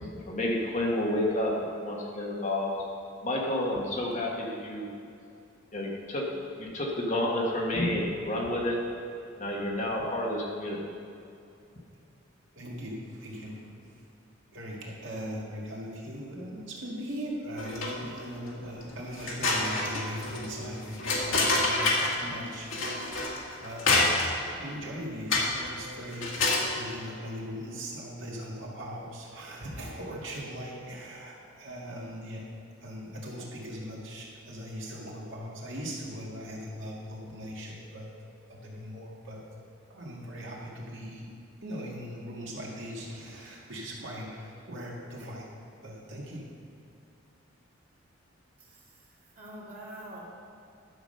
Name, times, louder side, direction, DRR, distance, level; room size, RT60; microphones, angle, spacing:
voice 1, 0.0-2.7 3.2-4.9 5.7-6.3 6.6-8.8 9.4-10.9, left 1 dB, 40° left, -2 dB, 1.6 m, -30 dB
voice 2, 12.6-14.0 14.5-23.4 23.6-32.5 32.8-38.1 38.5-39.4 39.9-41.3 41.6-45.5 45.8-46.5, equal, 65° right, -3 dB, 2.0 m, -40 dB
sound 1, 17.6-18.2 18.6-18.7 19.1-22.2 22.7-24.5 25.3-25.7 26.1-26.7, left 2 dB, 75° left, 1.7 m, -27 dB
voice 3, 48.6-50.3, right 1 dB, 45° right, -6 dB, 2.9 m, -46 dB
11.5 x 7.1 x 5.5 m, 2.6 s
head